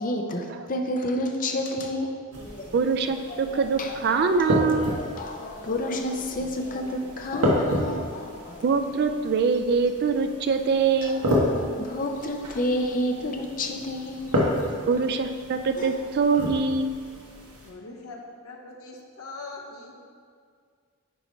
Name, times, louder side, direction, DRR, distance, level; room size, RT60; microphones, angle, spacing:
voice 1, 0.0-2.8 3.3-4.4 4.9-8.6 11.0-14.3 15.8-15.9, left 1 dB, 35° left, 3 dB, 0.5 m, -30 dB
sound 1, 2.3-17.7, left 1 dB, 90° right, 1.2 m, -31 dB
voice 2, 2.7-5.0 8.6-11.2 14.9-16.9, right 5 dB, 45° right, 8 dB, 0.3 m, -23 dB
voice 3, 17.6-20.0, left 3 dB, 70° left, 1 dB, 0.9 m, -41 dB
8.9 x 4.5 x 3.1 m, 2.1 s
head